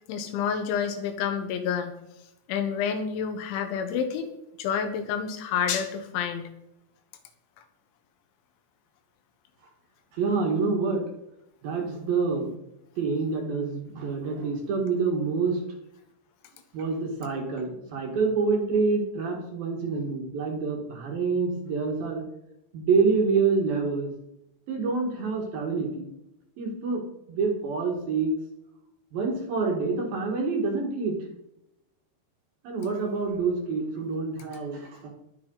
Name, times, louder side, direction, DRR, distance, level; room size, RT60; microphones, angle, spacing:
voice 1, 0.1-2.0 2.5-4.3 4.6-6.5, left 7 dB, 85° left, 8 dB, 3.6 m, -29 dB
voice 2, 10.1-11.0 11.6-12.5 13.0-15.6 16.7-22.2 22.7-24.1 24.7-26.1 26.6-27.0 27.3-28.3 29.1-31.2 32.6-35.1, right 4 dB, 60° right, 0 dB, 3.3 m, -27 dB
20.5 x 7.3 x 4.0 m, 0.85 s
omnidirectional pair, 5.3 m